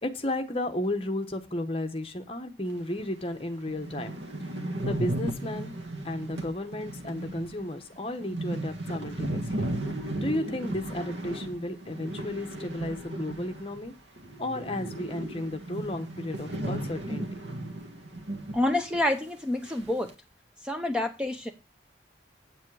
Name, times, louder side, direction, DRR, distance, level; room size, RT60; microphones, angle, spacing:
voice 1, 0.0-4.2 4.8-5.7 6.0-9.7 10.2-13.9 14.4-17.3, left 1 dB, 30° left, 7 dB, 1.0 m, -33 dB
sound 1, 3.0-3.1 3.4-3.5 3.7-13.9 14.2-18.7 18.9-19.0 19.7-20.1, right 1 dB, 80° right, 1.5 m, -35 dB
voice 2, 18.5-20.1 20.6-21.5, left 1 dB, 5° right, 5 dB, 0.6 m, -28 dB
8.4 x 7.4 x 4.7 m, 0.29 s
head